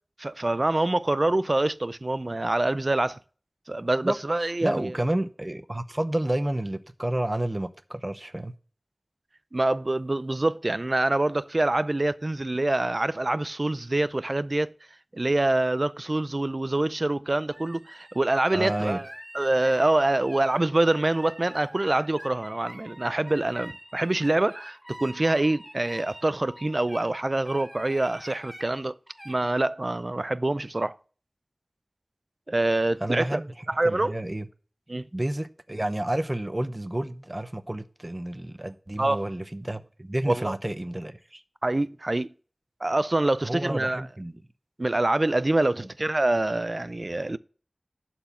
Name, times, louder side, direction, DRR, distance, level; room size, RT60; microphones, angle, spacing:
voice 1, 0.2-3.2 3.7-4.9 9.5-14.7 15.1-19.1 19.3-29.0 29.3-30.9 32.5-33.4 33.7-34.1 34.9-35.1 39.0-39.2 40.3-40.5 41.6-42.3 42.8-44.0 44.8-47.4, right 2 dB, 45° right, 0.5 m, -25 dB
voice 2, 4.6-8.5 18.5-19.0 33.0-33.5 33.8-34.5 35.1-41.4 43.4-44.4 45.8-45.9, right 1 dB, 30° right, 0.8 m, -30 dB
sound 1, 17.5-27.1 27.5-28.7 29.1-29.3, equal, 5° right, 2.0 m, -46 dB
11.5 x 4.5 x 6.9 m
wide cardioid pair, 60°, 0 cm